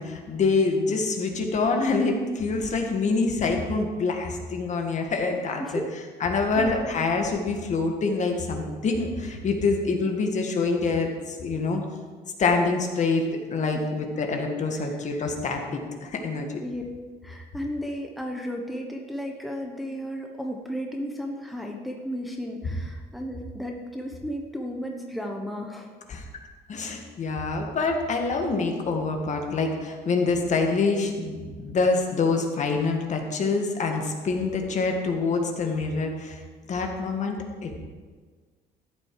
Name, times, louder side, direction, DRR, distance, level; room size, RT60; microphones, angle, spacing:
voice 1, 0.0-5.8 6.2-11.8 12.4-16.6 26.1-26.2 26.7-36.4 36.7-37.8, left 3 dB, 45° left, 3 dB, 1.8 m, -26 dB
voice 2, 5.6-5.9 6.6-6.8 13.6-13.8 14.7-15.0 16.6-16.8 17.2-25.9, equal, ahead, 1 dB, 1.2 m, -34 dB
14.0 x 8.1 x 4.8 m, 1.5 s
cardioid pair, 110°, 17 cm